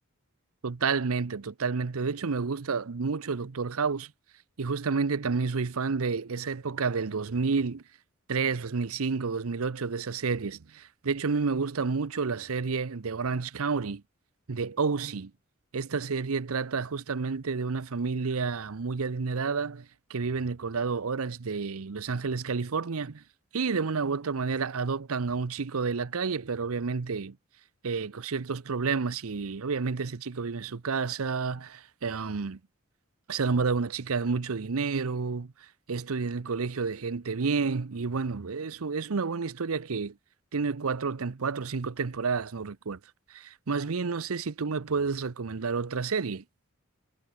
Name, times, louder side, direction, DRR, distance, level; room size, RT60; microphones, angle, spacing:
voice 1, 0.6-4.1 4.6-7.8 8.3-14.0 14.5-15.3 15.7-23.2 23.5-27.4 27.8-32.6 33.3-35.5 35.9-40.2 40.5-43.0 43.3-46.4, right 4 dB, 80° right, 0.7 m, -30 dB
head